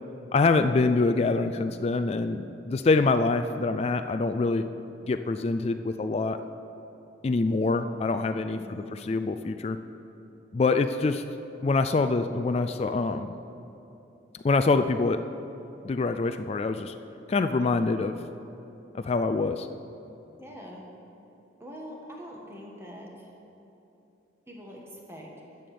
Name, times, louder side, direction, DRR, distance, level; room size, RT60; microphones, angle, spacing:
voice 1, 0.3-4.7 5.0-6.4 7.2-9.8 10.5-11.2 11.6-13.3 14.4-15.2 15.8-16.9 17.3-18.1 18.9-19.7, left 3 dB, 35° left, 9 dB, 0.3 m, -25 dB
voice 2, 8.5-8.9 20.4-20.8 21.6-23.3 24.5-25.3, equal, 15° right, -1 dB, 1.5 m, -43 dB
11.0 x 7.0 x 6.8 m, 3.0 s
head